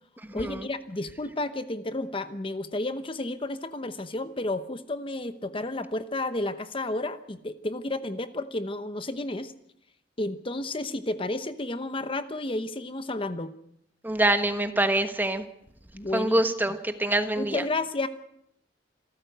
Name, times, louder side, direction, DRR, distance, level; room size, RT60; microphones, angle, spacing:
voice 1, 0.3-9.5 10.2-13.5 15.9-16.4 17.4-18.1, left 2 dB, 30° left, 11 dB, 1.0 m, -31 dB
voice 2, 14.0-15.4 16.1-17.6, right 1 dB, 10° right, 8 dB, 1.3 m, -25 dB
27.0 x 14.0 x 8.1 m, 0.75 s
head